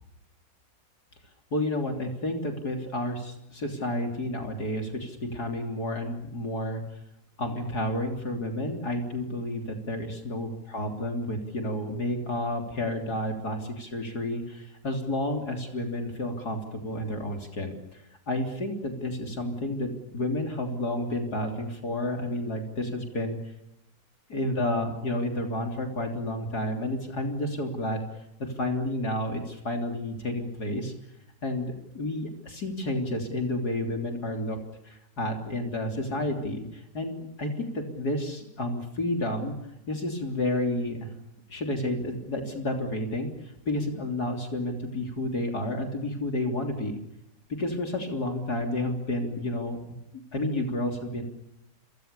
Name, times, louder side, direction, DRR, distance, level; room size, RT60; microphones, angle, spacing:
voice 1, 1.5-6.8 7.4-23.4 24.3-30.9 31.4-34.6 34.8-39.5 39.9-41.1 41.5-47.0 47.6-50.0 50.3-51.2, left 1 dB, 60° left, 4 dB, 3.9 m, -31 dB
29.5 x 25.5 x 6.9 m, 0.84 s
omnidirectional pair, 1.9 m